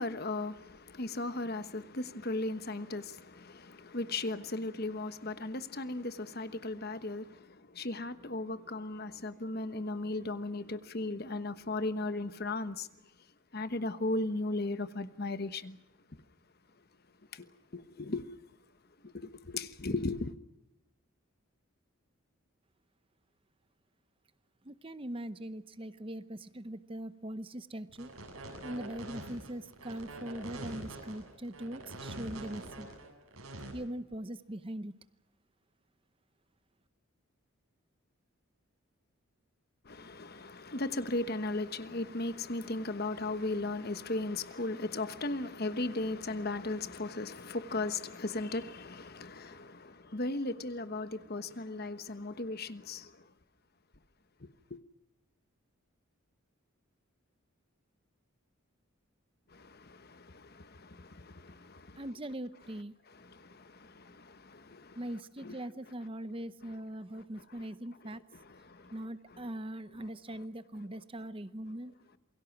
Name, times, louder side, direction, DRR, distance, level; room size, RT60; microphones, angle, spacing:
voice 1, 0.0-12.9 13.5-15.8 17.3-17.5 17.7-18.2 19.0-20.3 39.9-53.1 54.7-54.8 59.5-62.0 63.3-65.0 65.4-65.5 68.6-68.9, left 2 dB, 45° left, 1.2 m, -36 dB
voice 2, 24.6-28.1 28.6-32.9 33.7-34.9 62.0-63.0 65.0-68.2 68.9-71.9, right 1 dB, 25° right, 0.8 m, -41 dB
sound 1, 27.9-33.7, right 1 dB, 85° right, 7.7 m, -44 dB
28.0 x 23.0 x 6.0 m
head